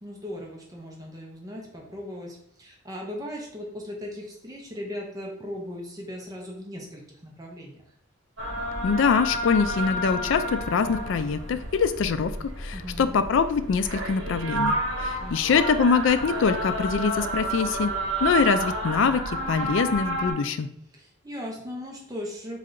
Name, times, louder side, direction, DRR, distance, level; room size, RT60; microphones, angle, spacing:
voice 1, 0.0-7.8 12.7-13.2 15.2-15.4 20.9-22.6, left 1 dB, 20° right, 0 dB, 0.7 m, -38 dB
sound 1, 8.4-20.3, right 1 dB, 75° right, 1.1 m, -30 dB
voice 2, 8.8-17.9 18.2-20.7, left 5 dB, 70° left, 11 dB, 0.4 m, -24 dB
3.7 x 3.3 x 3.8 m, 0.70 s
head